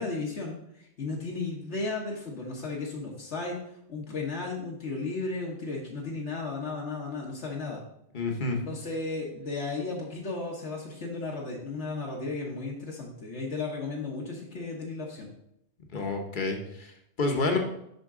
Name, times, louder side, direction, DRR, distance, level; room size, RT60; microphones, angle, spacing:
voice 1, 0.0-3.6 3.9-7.8 8.7-15.3, left 3 dB, 70° left, -2 dB, 1.4 m, -34 dB
voice 2, 8.1-8.6 15.9-17.6, left 3 dB, 45° left, 3 dB, 1.1 m, -29 dB
6.6 x 5.7 x 3.7 m, 0.77 s
omnidirectional pair, 1.2 m